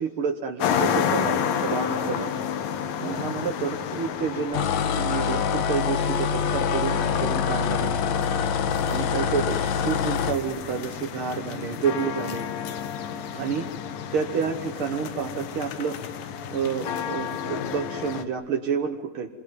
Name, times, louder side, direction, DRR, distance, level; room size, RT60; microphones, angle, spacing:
voice 1, 0.0-2.4 3.0-7.9 8.9-12.4 13.3-13.7 14.1-16.0 16.5-19.3, right 6 dB, 55° right, 3 dB, 1.6 m, -29 dB
sound 1, 0.6-18.3, left 8 dB, 90° left, 3.1 m, -31 dB
sound 2, 4.5-10.4, left 7 dB, 65° left, 2.3 m, -25 dB
28.0 x 22.0 x 9.4 m, 1.2 s
omnidirectional pair, 3.8 m